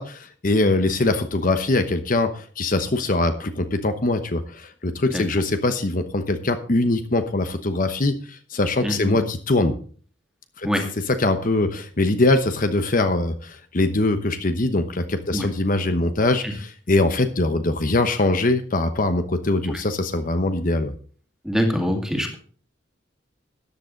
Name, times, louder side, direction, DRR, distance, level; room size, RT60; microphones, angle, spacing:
voice 1, 0.0-9.7 10.6-10.7 11.1-20.9, left 2 dB, 45° left, 8 dB, 1.0 m, -22 dB
voice 2, 8.8-9.2 10.6-11.0 15.3-15.5 16.4-16.5 19.7-19.8 21.4-22.4, equal, 5° right, 3 dB, 2.2 m, -24 dB
13.5 x 10.5 x 3.9 m, 0.42 s
head